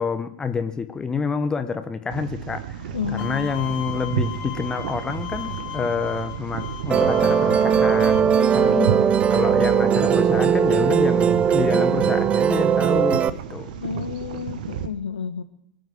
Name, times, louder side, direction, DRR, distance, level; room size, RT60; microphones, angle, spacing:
voice 1, 0.0-8.8 9.3-13.7, left 5 dB, 15° left, 1.2 m, -28 dB
sound 1, 2.1-14.9, right 8 dB, 55° right, 1.6 m, -32 dB
voice 2, 2.9-3.6 8.4-9.1 13.8-15.4, left 7 dB, 70° left, 1.3 m, -31 dB
Bowed string instrument, 3.2-8.2, left 16 dB, 35° left, 2.3 m, -36 dB
Musical instrument, 6.9-13.3, right 7 dB, 20° right, 0.6 m, -19 dB
23.5 x 7.9 x 7.7 m
figure-of-eight pair, 100°, 5 cm